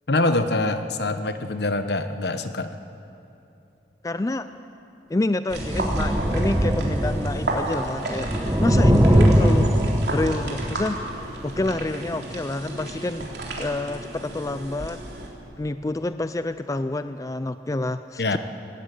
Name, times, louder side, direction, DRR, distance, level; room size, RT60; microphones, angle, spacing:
voice 1, 0.1-2.8 18.2-18.4, left 2 dB, 65° left, 9 dB, 1.1 m, -24 dB
voice 2, 4.0-4.5 5.1-9.7 10.1-11.0 11.4-13.3 13.6-15.0 15.6-18.4, left 2 dB, 20° left, 11 dB, 0.4 m, -28 dB
sound 1, 5.5-7.7 8.0-10.7 11.6-11.8, equal, 15° right, 1.2 m, -21 dB
sound 2, 5.5-15.3, right 1 dB, 70° right, 3.7 m, -33 dB
19.0 x 16.5 x 9.3 m, 2.8 s
head